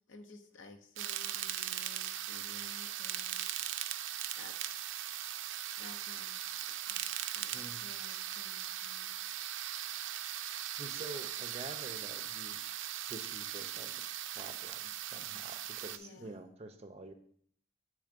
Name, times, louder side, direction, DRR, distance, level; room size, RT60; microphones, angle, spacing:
voice 1, 0.1-3.6 4.4-5.1 5.8-9.2 15.9-16.4, left 3 dB, 80° left, 6 dB, 0.7 m, -55 dB
sound 1, 1.0-16.0, right 11 dB, 75° right, 0.4 m, -39 dB
voice 2, 7.5-7.8 10.8-12.6 13.1-17.1, right 2 dB, 30° right, 6 dB, 0.6 m, -48 dB
7.8 x 3.2 x 5.1 m, 0.62 s
head